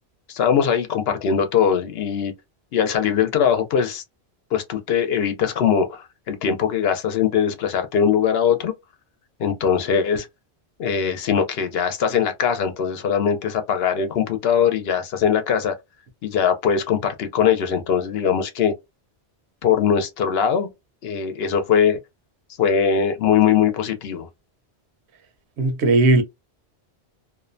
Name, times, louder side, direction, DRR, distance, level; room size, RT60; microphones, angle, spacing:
voice 1, 0.3-2.3 2.7-4.0 4.5-8.7 9.4-10.3 10.8-15.7 16.2-18.7 19.6-20.7 21.0-22.0 22.6-24.3, left 7 dB, 70° left, 0.8 m, -21 dB
voice 2, 25.6-26.2, right 2 dB, 80° right, 0.9 m, -17 dB
2.5 x 2.1 x 2.5 m
omnidirectional pair, 1.1 m